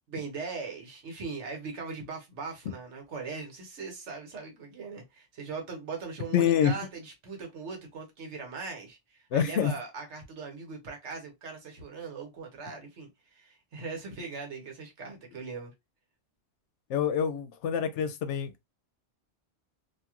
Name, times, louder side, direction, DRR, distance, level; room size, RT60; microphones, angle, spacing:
voice 1, 0.1-15.7, right 4 dB, 80° right, 1.2 m, -40 dB
voice 2, 6.3-6.7 9.3-9.7 16.9-18.5, left 8 dB, 85° left, 0.9 m, -26 dB
2.8 x 2.4 x 2.9 m
omnidirectional pair, 1.2 m